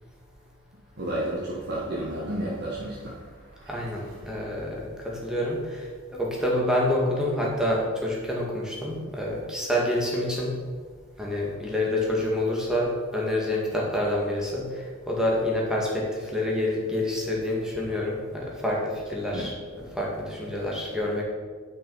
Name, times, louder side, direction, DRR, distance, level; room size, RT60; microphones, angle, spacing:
voice 1, 1.0-3.7 19.3-19.5, right 1 dB, 55° right, -6 dB, 1.7 m, -32 dB
voice 2, 3.7-10.6 11.2-21.2, left 1 dB, 5° right, -3 dB, 2.0 m, -27 dB
9.0 x 6.3 x 5.7 m, 1.5 s
head